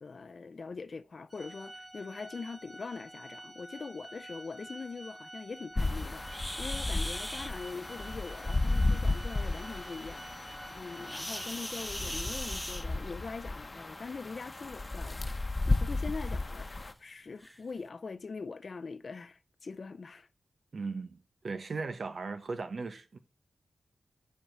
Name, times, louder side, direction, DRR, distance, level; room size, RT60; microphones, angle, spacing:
voice 1, 0.0-20.3, left 4 dB, 60° left, 0.6 m, -43 dB
Organ, 1.3-11.9, right 1 dB, 30° right, 2.5 m, -49 dB
sound 1, 5.8-16.9, left 2 dB, 35° left, 1.0 m, -34 dB
sound 2, 6.3-7.5 11.0-13.3 14.5-14.7 15.3-15.4 15.9-16.0 16.8-16.9 17.4-17.6, equal, 5° left, 0.4 m, -39 dB
voice 2, 20.7-21.2 21.4-23.2, right 4 dB, 65° right, 0.9 m, -37 dB
10.0 x 4.7 x 6.0 m
cardioid pair, 45°, 0 cm